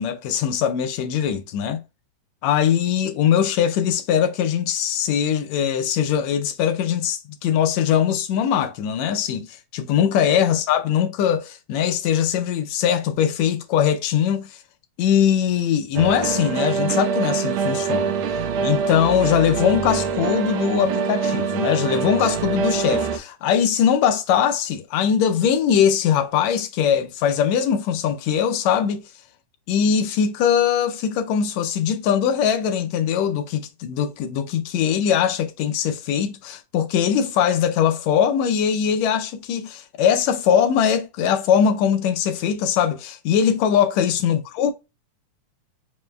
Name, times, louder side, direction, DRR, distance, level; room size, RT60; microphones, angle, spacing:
voice 1, 0.0-1.8 2.4-14.6 15.0-18.2 18.6-29.0 29.7-44.7, left 8 dB, 80° left, 1.6 m, -21 dB
sound 1, 16.0-23.2, right 6 dB, 75° right, 1.5 m, -24 dB
5.1 x 2.2 x 3.2 m
omnidirectional pair, 3.5 m